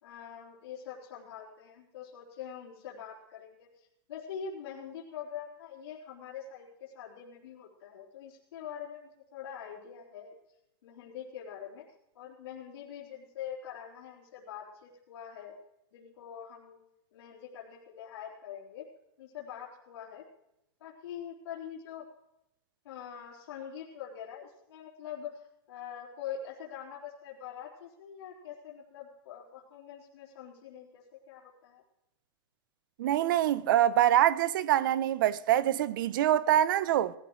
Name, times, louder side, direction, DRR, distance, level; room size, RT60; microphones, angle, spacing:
voice 1, 0.0-10.3 10.8-11.8 12.1-15.5 15.9-16.8 17.1-18.9 19.2-20.2 20.8-22.1 22.8-31.8, left 8 dB, 80° left, 3.8 m, -44 dB
voice 2, 33.0-37.1, right 12 dB, 50° right, 0.7 m, -25 dB
20.5 x 13.5 x 3.2 m
supercardioid pair, 180°, 13 cm